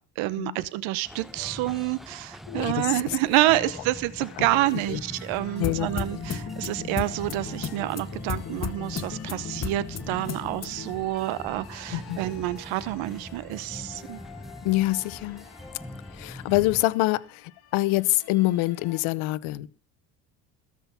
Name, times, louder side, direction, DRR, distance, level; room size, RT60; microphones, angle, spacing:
voice 1, 0.2-14.2, right 16 dB, 70° right, 0.9 m, -28 dB
sound 1, 1.0-16.8, left 1 dB, ahead, 0.9 m, -42 dB
voice 2, 2.5-2.9 4.4-4.5 4.9-5.0 5.6-5.9 11.9-12.2 14.6-15.4 16.1-19.7, left 18 dB, 70° left, 0.9 m, -25 dB
sound 2, 3.1-19.0, left 9 dB, 50° left, 2.5 m, -51 dB
sound 3, 5.6-10.9, left 6 dB, 30° left, 1.1 m, -34 dB
13.5 x 6.2 x 7.0 m
supercardioid pair, 75°, 49 cm